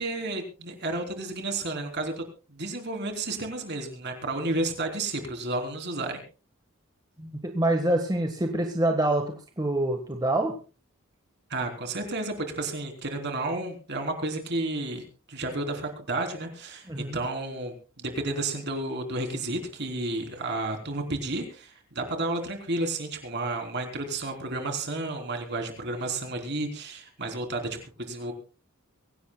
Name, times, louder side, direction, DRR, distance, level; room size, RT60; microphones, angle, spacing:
voice 1, 0.0-6.2 11.5-28.3, right 2 dB, 50° right, 4 dB, 3.5 m, -32 dB
voice 2, 7.2-10.5 16.9-17.2, right 1 dB, 20° right, 4 dB, 1.4 m, -26 dB
23.5 x 17.0 x 2.3 m, 0.33 s
head